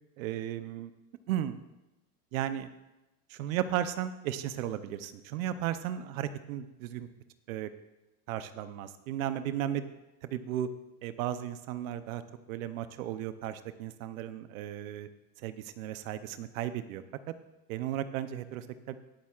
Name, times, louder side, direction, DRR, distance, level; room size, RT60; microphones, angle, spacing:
voice 1, 0.2-0.9 1.3-1.6 2.3-2.7 3.3-7.1 7.5-7.7 8.3-9.9 10.2-10.7 11.0-12.2 12.5-15.1 15.4-17.0 17.7-19.0, right 11 dB, 90° right, 11 dB, 0.7 m, -35 dB
20.0 x 7.4 x 2.4 m, 1.0 s
supercardioid pair, 130°, 40 cm